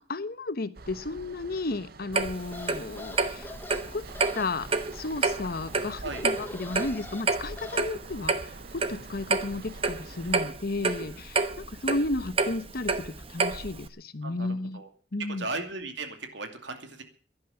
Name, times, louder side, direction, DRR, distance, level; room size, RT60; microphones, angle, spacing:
voice 1, 0.0-3.5 3.9-4.0 4.3-4.7 4.9-14.8 15.1-15.4, left 2 dB, 60° left, 13 dB, 1.1 m, -33 dB
sound 1, 0.7-10.4, right 3 dB, 60° right, 0.9 m, -48 dB
Clock, 2.1-13.9, right 4 dB, 35° right, 1.0 m, -29 dB
sound 2, 2.4-7.8, left 2 dB, 10° left, 1.1 m, -44 dB
voice 2, 10.8-11.2 14.2-14.5 14.7-14.9 15.3-17.0, right 3 dB, 85° right, 6 dB, 2.5 m, -37 dB
11.0 x 11.0 x 9.0 m, 0.43 s
head